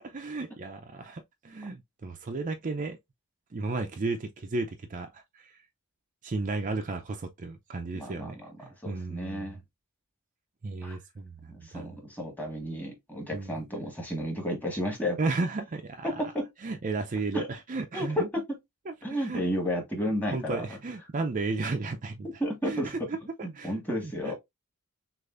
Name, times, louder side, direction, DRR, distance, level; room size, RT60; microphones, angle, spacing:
voice 1, 0.0-3.0 3.5-5.6 6.2-9.6 10.6-11.9 13.3-13.6 15.2-16.2 16.6-18.3 18.9-19.4 20.3-22.3 22.6-24.3, right 3 dB, 35° right, 0.5 m, -34 dB
voice 2, 7.9-8.3 8.8-9.6 10.8-11.0 11.7-15.2 16.0-16.5 17.3-17.5 17.9-18.4 19.0-20.6 22.4-23.1 23.4-24.3, equal, 10° left, 1.6 m, -32 dB
6.5 x 2.6 x 2.5 m
head